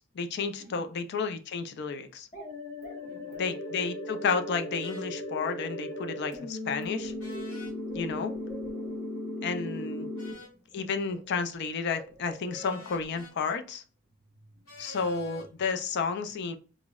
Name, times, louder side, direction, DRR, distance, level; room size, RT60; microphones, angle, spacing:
voice 1, 0.0-2.3 3.4-7.1 7.9-8.3 9.4-10.1 10.7-13.8 14.8-16.6, left 5 dB, 55° left, 0.4 m, -32 dB
voice 2, 0.6-0.9 3.0-3.5 7.9-8.3 10.0-10.8 14.5-14.8 15.2-15.3 16.0-16.1, right 2 dB, 50° right, 0.6 m, -55 dB
sound 1, 2.3-10.3, left 1 dB, 40° left, 0.9 m, -37 dB
sound 2, 4.8-5.1 7.2-7.7 10.2-10.6 12.5-13.3 14.7-15.5, left 1 dB, 75° left, 1.1 m, -48 dB
Bird, 6.6-9.1 10.2-10.5 10.7-13.1, right 1 dB, 5° right, 0.6 m, -51 dB
3.7 x 2.0 x 2.2 m
head